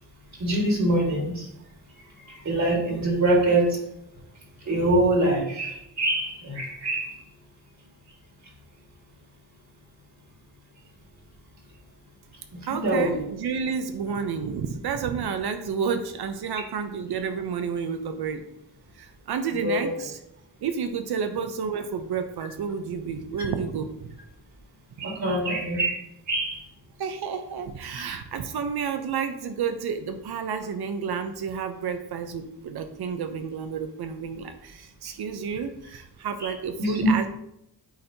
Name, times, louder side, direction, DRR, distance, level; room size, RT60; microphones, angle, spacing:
voice 1, 0.4-1.5 2.3-3.8 4.6-7.2 12.5-13.2 19.6-20.0 25.0-26.0 26.3-26.7 36.4-36.5 36.8-37.1, right 1 dB, 45° right, -2 dB, 1.9 m, -24 dB
voice 2, 12.6-18.4 19.0-20.2 20.6-24.1 25.0-25.1 27.0-37.3, right 6 dB, 75° right, 7 dB, 0.7 m, -30 dB
8.7 x 4.4 x 2.7 m, 0.80 s
wide cardioid pair, 160°, 39 cm